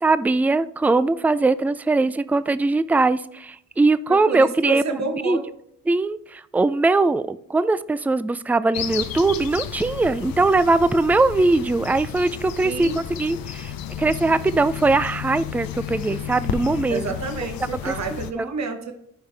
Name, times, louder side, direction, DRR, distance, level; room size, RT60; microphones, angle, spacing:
voice 1, 0.0-5.4 5.9-13.7 14.0-17.0 17.9-18.5, right 3 dB, 5° right, 15 dB, 0.4 m, -21 dB
voice 2, 4.1-5.4 12.6-13.0 16.9-18.9, right 4 dB, 50° right, 5 dB, 1.1 m, -29 dB
sound 1, 8.7-18.3, left 9 dB, 80° left, 0.7 m, -32 dB
11.5 x 4.7 x 3.4 m, 0.75 s
supercardioid pair, 50°, 34 cm